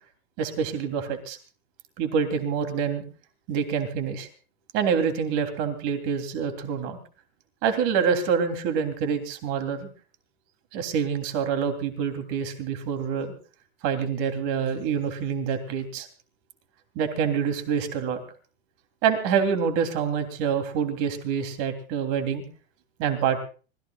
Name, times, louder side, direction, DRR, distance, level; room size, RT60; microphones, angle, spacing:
voice 1, 0.4-1.4 2.0-3.0 3.5-4.3 4.7-7.0 7.6-9.9 10.7-13.3 13.8-16.1 16.9-18.2 19.0-22.4 23.0-23.4, right 7 dB, 50° right, 7 dB, 3.2 m, -26 dB
25.5 x 18.0 x 2.4 m, 0.37 s
hypercardioid pair, 120°, 30 cm